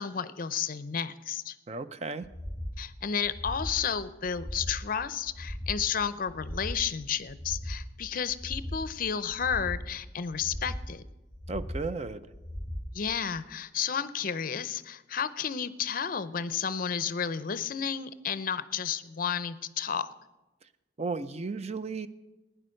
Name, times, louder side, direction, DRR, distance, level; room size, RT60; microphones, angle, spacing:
voice 1, 0.0-1.5 2.8-11.0 12.9-20.1, left 7 dB, 50° left, 15 dB, 0.6 m, -32 dB
voice 2, 1.7-2.2 11.5-12.2 21.0-22.1, right 3 dB, 35° right, 12 dB, 0.5 m, -34 dB
sound 1, 2.2-2.8 3.2-3.8 4.2-4.8 5.2-5.8 6.2-6.8 7.2-7.8 8.2-8.8 9.3-9.8 10.3-10.9 11.3-11.9 12.3-12.9 13.3-13.4, equal, 5° left, 5.0 m, -38 dB
15.5 x 10.0 x 6.4 m, 1.1 s
head